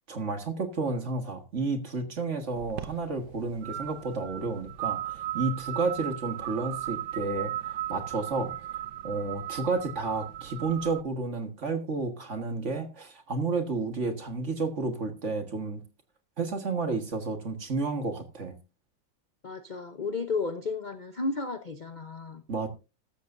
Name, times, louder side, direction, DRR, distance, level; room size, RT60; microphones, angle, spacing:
voice 1, 0.1-8.5 9.0-15.8 16.4-18.6 22.5-22.7, right 3 dB, 40° right, 1.8 m, -31 dB
sound 1, 2.6-11.0, right 13 dB, 65° right, 1.4 m, -37 dB
voice 2, 19.4-22.4, left 3 dB, 50° left, 0.5 m, -33 dB
14.0 x 13.0 x 2.6 m
omnidirectional pair, 2.1 m